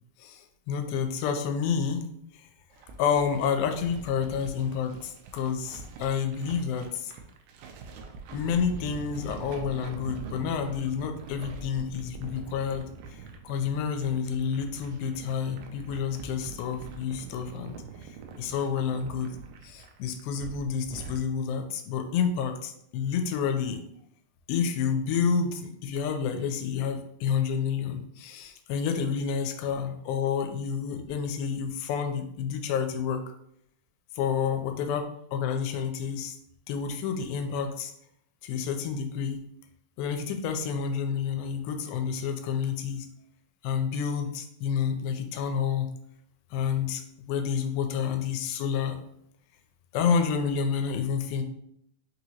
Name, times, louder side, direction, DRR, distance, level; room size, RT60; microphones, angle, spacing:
voice 1, 0.2-2.0 2.3-2.5 3.0-7.1 8.3-17.8 18.0-19.4 19.6-23.8 24.5-33.2 34.2-36.4 36.7-37.9 38.4-39.4 40.0-43.1 43.6-45.9 46.5-47.0 47.3-49.0 49.9-51.4, left 7 dB, 85° left, 6 dB, 2.3 m, -29 dB
sound 1, 2.7-21.2, right 4 dB, 80° right, 2.1 m, -44 dB
5.5 x 2.9 x 2.8 m, 0.74 s
omnidirectional pair, 4.2 m